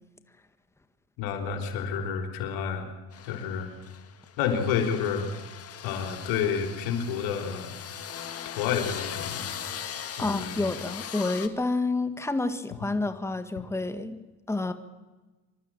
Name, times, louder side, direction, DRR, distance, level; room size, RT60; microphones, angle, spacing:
voice 1, 1.2-2.9 3.2-3.7 4.4-5.3 5.8-7.8 8.5-9.5 10.2-10.7, left 7 dB, 80° left, 5 dB, 3.7 m, -29 dB
sound 1, 3.1-11.5, left 8 dB, 40° left, 1.8 m, -39 dB
voice 2, 10.2-14.2 14.5-14.7, left 2 dB, 5° left, 9 dB, 1.5 m, -29 dB
26.0 x 12.5 x 9.0 m, 1.2 s
cardioid pair, 105°, 36 cm